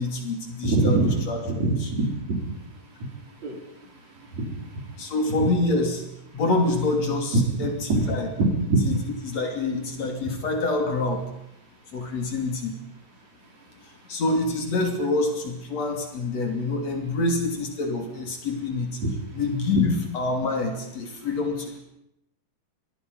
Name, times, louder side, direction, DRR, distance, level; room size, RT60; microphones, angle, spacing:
voice 1, 0.0-1.4 1.8-1.9 5.0-6.0 6.3-8.3 8.8-11.3 11.9-12.7 14.1-19.0 19.3-21.8, left 2 dB, 50° left, 3 dB, 3.9 m, -26 dB
voice 2, 0.6-2.4 3.4-3.5 4.4-4.5 5.4-5.5 7.9-8.0 8.4-8.8 19.0-19.1, right 2 dB, 55° right, 0 dB, 5.6 m, -23 dB
25.0 x 21.0 x 5.5 m, 0.80 s
omnidirectional pair, 3.8 m